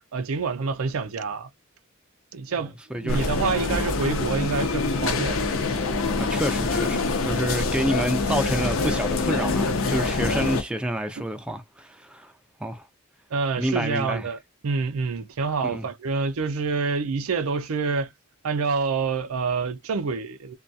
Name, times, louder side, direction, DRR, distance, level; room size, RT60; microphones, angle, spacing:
voice 1, 0.1-1.5 2.3-5.4 11.2-11.3 13.3-18.1 18.4-20.5, right 4 dB, 90° right, 0.5 m, -27 dB
voice 2, 2.6-3.5 6.2-12.3 12.6-12.9 13.6-14.3 15.6-15.9, right 1 dB, 5° right, 0.3 m, -29 dB
sound 1, 3.1-10.6, left 3 dB, 75° left, 0.6 m, -25 dB
2.3 x 2.1 x 2.6 m
head